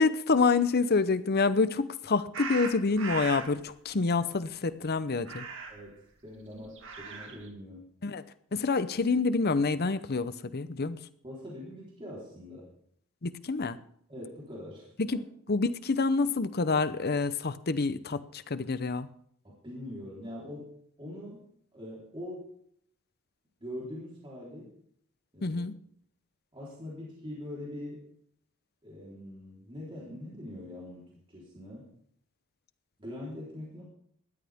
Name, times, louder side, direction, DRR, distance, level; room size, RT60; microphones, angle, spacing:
voice 1, 0.0-5.4 8.0-8.2 8.5-11.0 13.2-13.8 15.0-15.2 15.5-18.2 18.5-19.1 25.4-25.7, left 4 dB, 45° left, 14 dB, 0.7 m, -27 dB
sound 1, 2.3-3.5 5.2-5.9 6.7-7.5, right 5 dB, 60° right, 2.4 m, -38 dB
voice 2, 5.7-7.9 11.2-12.7 14.1-15.2 19.4-20.7 21.0-21.4 21.7-22.5 23.6-24.7 25.3-25.6 26.5-28.0 28.8-31.9 33.0-33.8, left 1 dB, 25° right, -5 dB, 3.9 m, -43 dB
19.5 x 13.5 x 3.6 m, 0.66 s
head